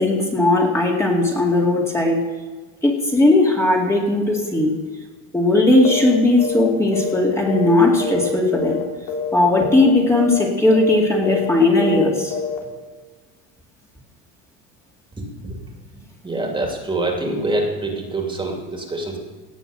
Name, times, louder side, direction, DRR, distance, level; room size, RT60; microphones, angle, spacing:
voice 1, 0.0-2.2 2.8-4.7 5.3-8.8 9.3-12.3, left 2 dB, 10° left, -2 dB, 2.4 m, -17 dB
sound 1, 5.8-6.1 6.4-6.7 6.9-8.3 8.5-8.8 9.1-9.4 9.6-9.9 10.2-10.4 10.7-11.0 11.2-11.5 11.8-12.0 12.3-12.6, left 5 dB, 75° left, 3.0 m, -26 dB
voice 2, 15.2-15.5 16.2-19.2, right 2 dB, 15° right, 1 dB, 2.5 m, -25 dB
18.0 x 7.0 x 7.6 m, 1.3 s
cardioid pair, 125°, 30 cm